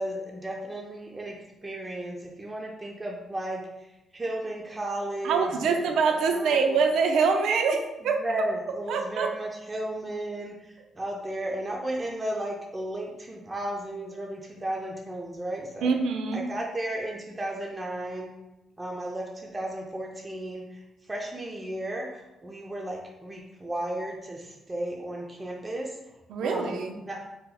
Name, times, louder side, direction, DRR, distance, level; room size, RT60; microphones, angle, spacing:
voice 1, 0.0-1.4 1.6-3.6 4.1-5.8 6.3-6.8 8.1-10.5 11.0-15.9 16.3-18.3 18.8-20.6 21.1-25.9 26.4-26.8 27.1-27.2, right 1 dB, 20° right, -1 dB, 0.4 m, -34 dB
voice 2, 5.2-8.4 8.9-9.3 15.8-16.5 26.3-27.0, right 5 dB, 85° right, 5 dB, 0.4 m, -25 dB
2.8 x 2.0 x 3.7 m, 0.98 s
cardioid pair, 115°, 0 cm